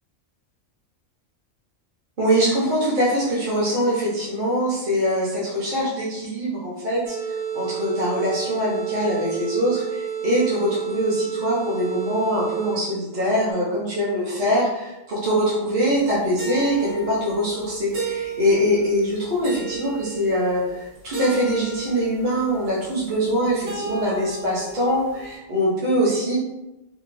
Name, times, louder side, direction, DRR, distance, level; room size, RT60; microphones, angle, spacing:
voice 1, 2.2-26.4, equal, 45° right, -8 dB, 0.8 m, -23 dB
sound 1, 7.1-13.0, right 8 dB, 65° left, 0.6 m, -30 dB
sound 2, 16.1-25.4, right 5 dB, 75° right, 1.3 m, -35 dB
2.8 x 2.2 x 2.5 m, 0.96 s
omnidirectional pair, 1.4 m